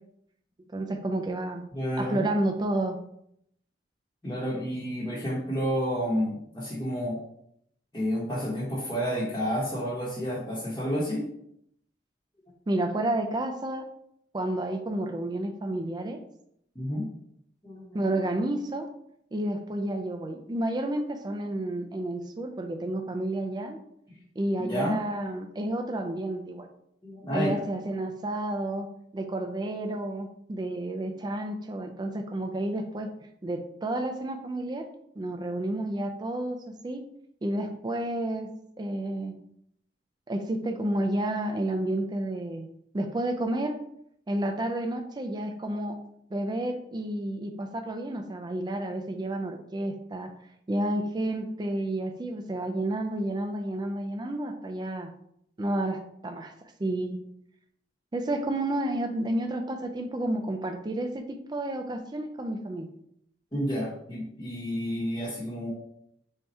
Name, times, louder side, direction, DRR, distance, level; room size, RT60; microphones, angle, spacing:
voice 1, 0.7-1.6 2.0-3.0 12.7-13.9 14.3-16.2 17.9-18.9 19.3-23.8 24.4-26.7 27.3-28.9 29.1-33.1 33.4-34.8 35.2-36.6 36.8-37.0 37.4-38.5 38.8-39.4 40.3-42.7 42.9-43.8 44.3-46.0 46.3-50.3 50.7-55.1 55.6-56.5 56.8-57.2 58.1-62.9, right 1 dB, 25° right, 5 dB, 0.4 m, -30 dB
voice 2, 1.7-2.2 4.2-7.2 7.9-11.2 16.7-17.0 17.6-18.2 24.6-25.0 27.0-27.6 63.5-65.7, equal, 20° left, -7 dB, 0.9 m, -30 dB
3.5 x 2.7 x 4.2 m, 0.73 s
head